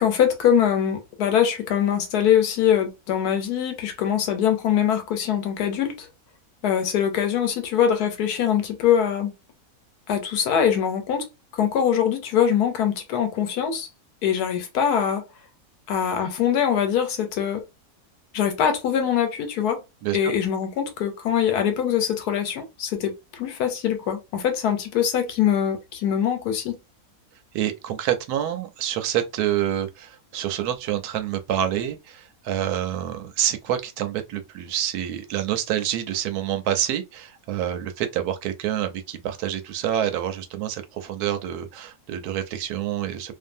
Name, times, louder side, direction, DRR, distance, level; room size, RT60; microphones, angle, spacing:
voice 1, 0.0-6.1 6.6-9.3 10.1-11.2 11.5-13.9 14.2-15.2 15.9-17.6 18.3-19.8 20.1-26.8, left 9 dB, 90° left, 1.2 m, -23 dB
voice 2, 20.0-20.3 27.5-43.3, right 11 dB, 85° right, 1.1 m, -27 dB
2.6 x 2.5 x 2.5 m
omnidirectional pair, 1.6 m